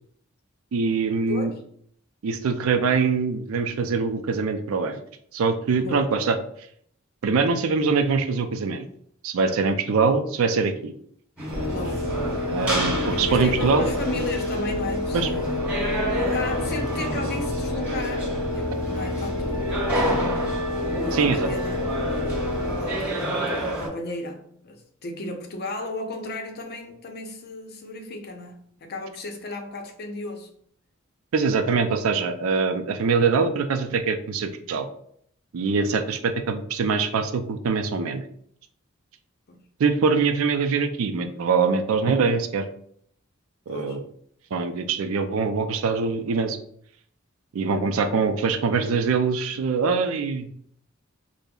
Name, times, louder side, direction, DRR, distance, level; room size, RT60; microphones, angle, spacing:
voice 1, 0.7-1.5 2.2-5.0 5.3-6.4 7.2-8.9 9.2-10.9 12.5-13.9 15.1-15.3 21.1-21.5 31.3-34.9 35.5-38.2 39.8-42.7 43.7-44.0 44.5-46.6 47.5-50.5, right 5 dB, 85° right, 0.4 m, -23 dB
voice 2, 5.8-6.1 11.6-12.2 13.1-15.5 16.2-19.7 21.0-21.9 22.7-30.5 39.5-39.7 43.7-44.0, left 2 dB, 50° left, 0.6 m, -35 dB
sound 1, 11.4-23.9, equal, 5° right, 1.4 m, -30 dB
sound 2, 11.5-23.2, left 1 dB, 60° right, 0.9 m, -28 dB
5.1 x 2.0 x 2.2 m
head